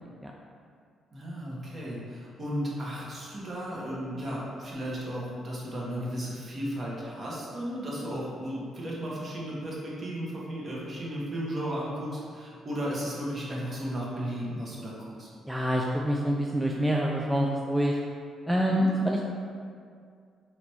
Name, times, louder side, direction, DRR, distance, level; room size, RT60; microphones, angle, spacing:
voice 1, 1.1-15.3 18.7-18.9, equal, 40° right, -5 dB, 1.1 m, -34 dB
voice 2, 15.5-18.0 18.5-19.2, equal, 5° right, -2 dB, 0.3 m, -26 dB
4.1 x 3.2 x 2.9 m, 2.2 s
cardioid pair, 90°, 0 cm